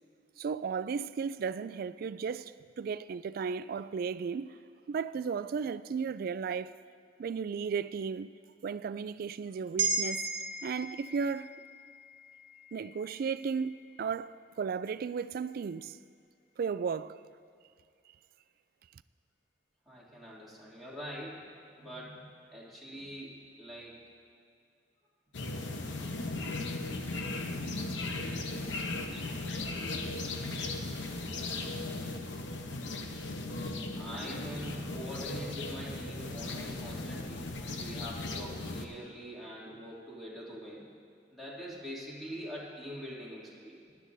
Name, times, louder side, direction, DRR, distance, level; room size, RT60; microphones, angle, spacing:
voice 1, 0.4-4.6 4.9-6.7 7.2-8.3 8.6-10.3 10.6-11.6 12.7-16.0 16.6-17.2, right 6 dB, 55° right, 0.3 m, -35 dB
sound 1, 9.8-14.3 14.7-14.8, right 3 dB, 85° right, 1.1 m, -37 dB
voice 2, 19.9-21.5 21.8-24.0 31.3-31.5 34.0-40.8 41.3-43.9, equal, ahead, 2.6 m, -44 dB
sound 2, 25.3-38.8, left 2 dB, 80° left, 0.9 m, -37 dB
19.0 x 11.5 x 2.7 m
head